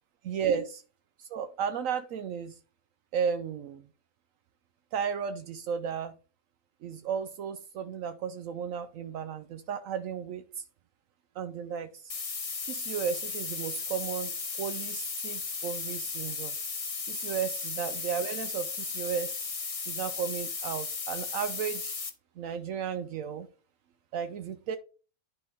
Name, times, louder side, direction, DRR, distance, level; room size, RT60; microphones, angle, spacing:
voice 1, 0.2-0.8 1.2-2.6 3.1-3.8 4.9-6.2 6.8-10.6 11.4-12.1 12.6-14.3 14.6-16.6 17.1-19.4 19.9-21.9 22.4-23.5 24.1-24.8, right 7 dB, 75° right, 1.0 m, -34 dB
sound 1, 12.1-22.1, left 4 dB, 35° left, 0.7 m, -35 dB
9.9 x 4.6 x 3.5 m
omnidirectional pair, 1.5 m